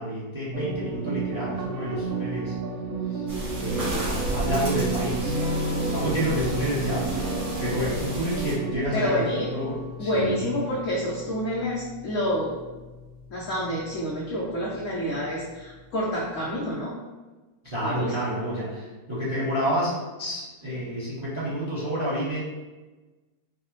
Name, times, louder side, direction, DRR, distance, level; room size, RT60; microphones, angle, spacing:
voice 1, 0.0-2.6 3.0-5.4 5.8-9.2 9.5-10.5 17.6-19.9 20.2-22.4, equal, 25° right, -8 dB, 0.6 m, -29 dB
sound 1, 0.5-8.7, right 5 dB, 75° right, 0.8 m, -31 dB
sound 2, 3.3-8.5, right 1 dB, 90° right, 2.2 m, -33 dB
sound 3, 5.2-16.7, left 2 dB, 55° right, 1.1 m, -37 dB
voice 2, 8.9-9.5 10.0-12.6 13.3-16.9 17.8-18.1, equal, 75° left, -5 dB, 0.7 m, -28 dB
4.6 x 2.0 x 2.9 m, 1.2 s
omnidirectional pair, 2.0 m